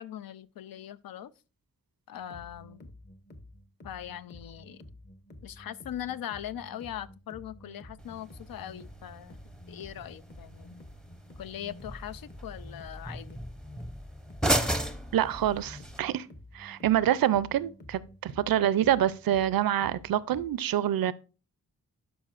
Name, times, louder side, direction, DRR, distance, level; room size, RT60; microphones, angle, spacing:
voice 1, 0.0-1.3 2.1-2.8 3.8-4.8 5.4-9.4 9.7-10.7 11.4-13.4, left 10 dB, 80° left, 0.5 m, -40 dB
sound 1, 2.1-20.5, left 1 dB, 30° left, 0.9 m, -49 dB
sound 2, 8.0-16.0, right 1 dB, ahead, 0.6 m, -35 dB
voice 2, 15.1-16.3 16.5-21.1, right 11 dB, 85° right, 0.5 m, -26 dB
12.0 x 5.1 x 2.4 m
wide cardioid pair, 90°, 34 cm